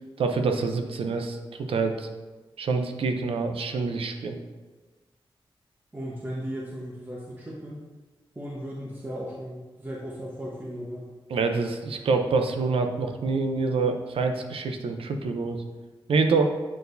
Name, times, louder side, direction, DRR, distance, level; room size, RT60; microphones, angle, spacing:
voice 1, 0.2-2.1 2.6-4.4 11.3-15.6 16.1-16.6, right 4 dB, 90° right, 5 dB, 0.6 m, -26 dB
voice 2, 5.9-7.8 8.3-11.1, equal, 20° right, -5 dB, 1.0 m, -36 dB
8.3 x 4.5 x 2.7 m, 1.2 s
wide cardioid pair, 105°, 9 cm